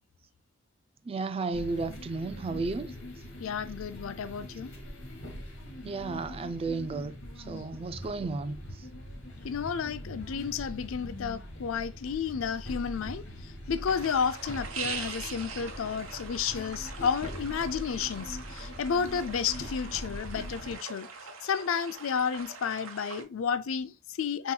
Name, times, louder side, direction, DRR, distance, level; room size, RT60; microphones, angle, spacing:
voice 1, 1.1-2.9 5.8-7.1 7.5-8.6, right 3 dB, 30° right, 0.3 m, -33 dB
sound 1, 1.5-20.8, left 1 dB, 65° left, 2.0 m, -42 dB
voice 2, 3.4-4.7 9.4-21.1 21.4-24.5, left 6 dB, 80° left, 0.4 m, -32 dB
sound 2, 13.8-23.2, right 5 dB, 85° right, 1.0 m, -42 dB
7.0 x 3.0 x 2.2 m
head